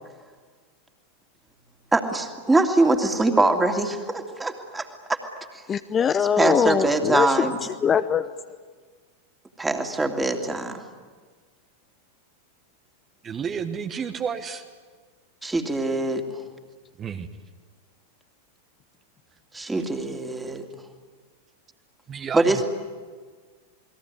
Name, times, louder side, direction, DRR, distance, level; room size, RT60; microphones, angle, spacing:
voice 1, 1.9-5.2 6.2-7.5 9.6-10.8 15.4-16.4 19.5-20.6 22.3-22.6, right 2 dB, 10° right, 4 dB, 2.8 m, -23 dB
voice 2, 5.7-7.5 7.8-8.3, left 7 dB, 25° left, 12 dB, 0.7 m, -22 dB
voice 3, 13.2-14.6 17.0-17.3 22.1-22.6, right 7 dB, 25° right, 7 dB, 1.4 m, -31 dB
29.0 x 21.0 x 9.6 m, 1.5 s
figure-of-eight pair, 90°, 0 cm